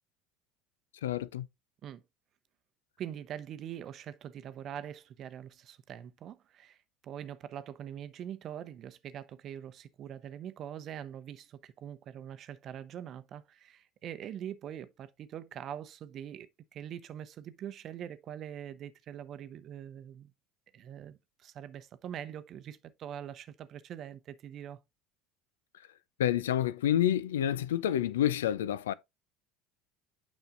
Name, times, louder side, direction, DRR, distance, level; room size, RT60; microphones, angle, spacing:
voice 1, 1.0-1.5 26.2-28.9, left 11 dB, 75° left, 0.4 m, -28 dB
voice 2, 3.0-20.3 20.7-24.8, right 10 dB, 45° right, 0.7 m, -43 dB
9.1 x 5.4 x 2.5 m
figure-of-eight pair, 70°, 0 cm